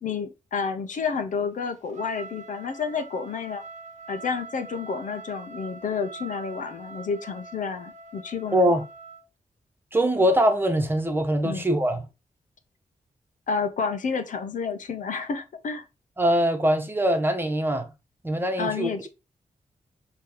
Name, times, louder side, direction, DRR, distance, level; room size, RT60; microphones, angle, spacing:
voice 1, 0.0-3.6 4.1-8.6 11.4-11.6 13.5-15.9 18.6-19.1, left 5 dB, 75° left, 1.1 m, -30 dB
Trumpet, 1.9-9.2, right 3 dB, 70° right, 1.0 m, -43 dB
voice 2, 8.5-8.8 9.9-12.1 16.2-17.9 18.2-18.9, right 1 dB, 15° right, 1.2 m, -22 dB
6.8 x 3.2 x 4.6 m
wide cardioid pair, 140°, 13 cm